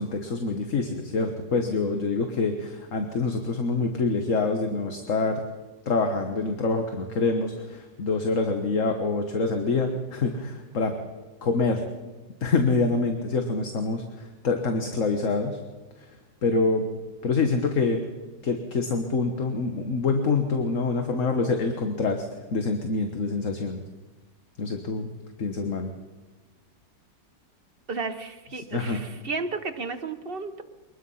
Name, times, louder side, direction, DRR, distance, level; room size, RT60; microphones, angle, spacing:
voice 1, 0.0-5.4 5.8-10.9 11.4-11.8 12.4-15.6 16.0-16.1 16.4-16.8 17.2-18.0 18.4-22.3 22.5-23.8 24.6-25.1 25.4-25.9 28.7-29.0, left 3 dB, 45° left, 5 dB, 1.7 m, -26 dB
voice 2, 27.9-30.6, right 4 dB, 35° right, 8 dB, 1.0 m, -33 dB
24.0 x 20.0 x 5.7 m, 1.2 s
omnidirectional pair, 2.0 m